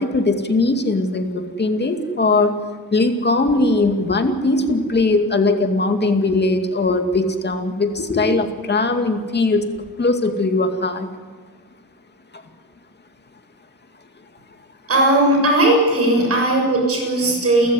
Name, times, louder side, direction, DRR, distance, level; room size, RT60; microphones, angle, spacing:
voice 1, 0.0-2.6 2.9-9.7 10.0-11.1, left 2 dB, 30° left, 6 dB, 2.4 m, -19 dB
voice 2, 14.9-17.7, right 1 dB, 40° right, 1 dB, 7.5 m, -17 dB
29.5 x 15.0 x 9.8 m, 1.5 s
wide cardioid pair, 135°, 36 cm